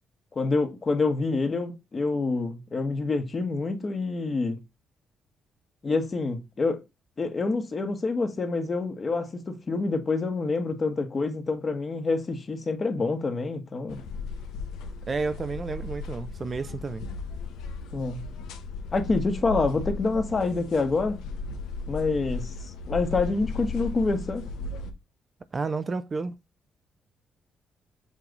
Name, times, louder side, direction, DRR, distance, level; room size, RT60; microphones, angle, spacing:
voice 1, 0.4-4.6 5.8-6.8 7.2-14.0 17.9-18.3 18.9-21.2 21.9-24.5, left 3 dB, 35° left, 1.6 m, -27 dB
sound 1, 13.9-24.9, left 3 dB, 90° left, 1.2 m, -36 dB
voice 2, 15.1-17.1 25.5-26.3, right 4 dB, 35° right, 0.6 m, -31 dB
7.2 x 3.4 x 4.0 m
cardioid pair, 90°, 0 cm